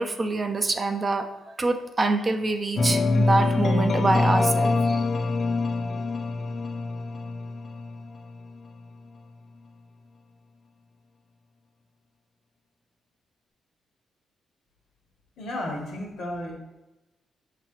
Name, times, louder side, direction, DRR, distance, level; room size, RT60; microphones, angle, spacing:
voice 1, 0.0-5.0, right 2 dB, 35° right, 6 dB, 0.5 m, -25 dB
sound 1, 2.8-8.7, left 3 dB, 50° left, 0.3 m, -25 dB
voice 2, 15.4-16.5, left 1 dB, 80° left, -1 dB, 1.2 m, -33 dB
5.5 x 3.0 x 2.9 m, 1.0 s
cardioid pair, 70°, 0 cm